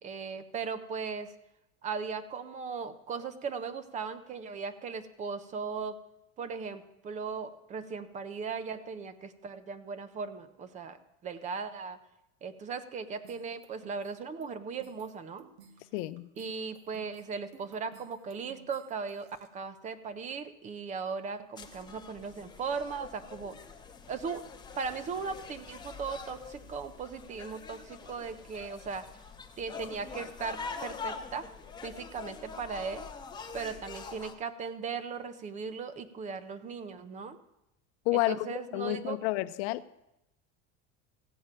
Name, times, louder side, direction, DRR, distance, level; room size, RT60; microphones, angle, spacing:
voice 1, 0.0-1.3 1.8-6.0 6.4-12.0 12.4-15.5 16.4-23.6 24.1-24.4 24.8-29.1 29.6-31.5 31.8-33.1 33.5-37.4 38.1-39.2, right 5 dB, 20° right, 0.6 m, -38 dB
sound 1, 13.2-19.5, right 6 dB, 55° right, 1.6 m, -56 dB
voice 2, 15.9-16.3 38.1-38.5 38.7-39.8, left 18 dB, 70° left, 0.7 m, -30 dB
sound 2, 21.6-34.3, left 5 dB, 10° left, 0.8 m, -45 dB
15.0 x 5.5 x 8.9 m
cardioid pair, 165°, 35 cm